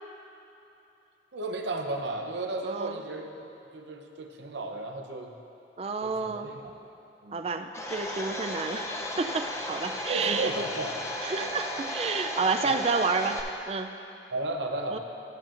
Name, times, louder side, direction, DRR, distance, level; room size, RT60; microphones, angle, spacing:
voice 1, 1.3-5.3 6.0-6.9 7.2-7.4 10.1-11.0 11.3-11.5 12.6-12.8 14.3-15.0, right 2 dB, 85° right, 3 dB, 0.7 m, -34 dB
voice 2, 2.6-3.0 5.8-6.5 7.3-8.9 9.2-10.5 11.2-13.4 13.7-13.9 14.9-15.0, right 4 dB, 35° right, 7 dB, 0.3 m, -30 dB
Domestic sounds home sounds, 7.7-13.4, left 1 dB, 15° left, 0.5 m, -35 dB
12.5 x 9.0 x 2.5 m, 3.0 s
head